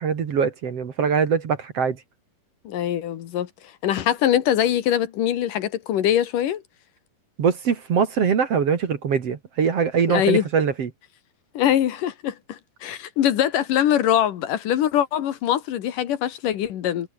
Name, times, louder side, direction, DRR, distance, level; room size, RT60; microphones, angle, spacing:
voice 1, 0.0-2.0 7.4-10.9, right 6 dB, 50° right, 2.7 m, -22 dB
voice 2, 2.6-3.5 3.8-6.6 10.1-10.4 11.5-17.1, left 11 dB, 70° left, 3.0 m, -22 dB
omnidirectional pair, 4.1 m